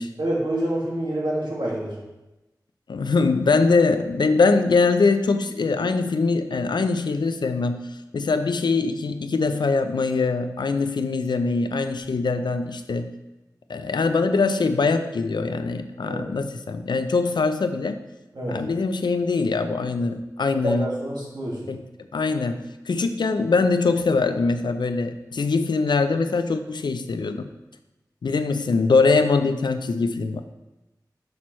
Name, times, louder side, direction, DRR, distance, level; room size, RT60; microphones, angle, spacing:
voice 1, 0.2-1.9 16.0-16.2 18.3-18.6 20.6-21.6, right 1 dB, 75° right, -5 dB, 1.9 m, -27 dB
voice 2, 2.9-7.9 8.1-13.1 13.7-18.0 18.5-21.0 21.7-21.8 22.1-27.5 28.2-30.4, left 4 dB, 85° left, 9 dB, 0.4 m, -22 dB
6.1 x 5.9 x 3.1 m, 1.0 s
wide cardioid pair, 65°, 7 cm